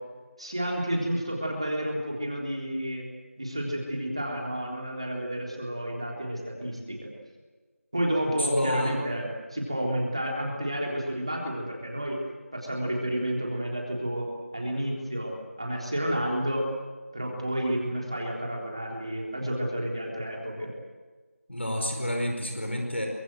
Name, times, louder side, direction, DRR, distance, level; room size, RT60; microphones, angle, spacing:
voice 1, 0.4-3.0 3.4-7.1 7.9-12.2 12.5-16.7 17.1-20.7, equal, 25° right, -1 dB, 3.7 m, -30 dB
voice 2, 8.5-8.9 21.5-23.1, equal, 55° left, 2 dB, 4.9 m, -29 dB
24.0 x 22.0 x 7.9 m, 1.3 s
figure-of-eight pair, 180°, 8 cm